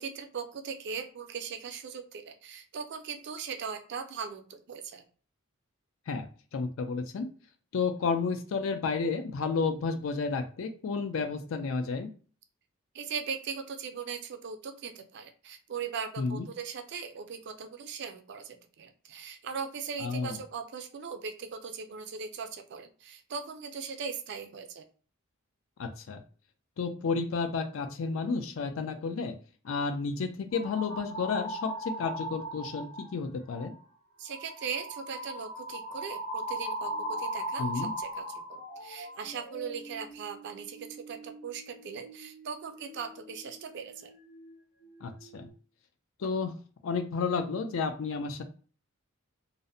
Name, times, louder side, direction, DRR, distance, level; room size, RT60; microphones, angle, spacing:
voice 1, 0.0-5.0 12.9-24.8 34.2-44.1, right 6 dB, 55° right, 7 dB, 0.4 m, -39 dB
voice 2, 6.5-7.3 7.7-12.1 16.2-16.5 20.0-20.4 25.8-26.2 26.8-29.4 29.6-33.7 37.6-37.9 45.0-45.5 46.2-46.5 46.8-48.4, left 4 dB, 65° left, 8 dB, 0.4 m, -31 dB
sound 1, 30.5-33.1 33.5-33.8 34.2-44.6 44.8-45.5, right 1 dB, 40° left, 1.1 m, -40 dB
2.6 x 2.0 x 2.6 m, 0.41 s
head